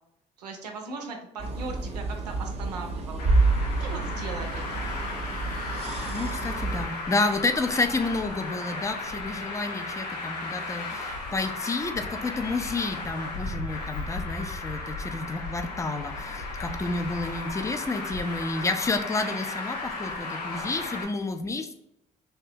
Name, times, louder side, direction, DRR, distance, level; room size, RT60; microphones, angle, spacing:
voice 1, 0.4-3.2 3.8-4.9, right 3 dB, 90° right, 3 dB, 0.4 m, -38 dB
sound 1, 1.4-6.9, right 3 dB, 30° right, 0.6 m, -28 dB
Traffic noise roadway noise, 3.2-21.0, left 3 dB, 90° left, 0.4 m, -35 dB
voice 2, 6.1-21.7, left 3 dB, 15° left, 7 dB, 0.4 m, -30 dB
2.7 x 2.2 x 2.6 m, 0.83 s
hypercardioid pair, 45°, 20 cm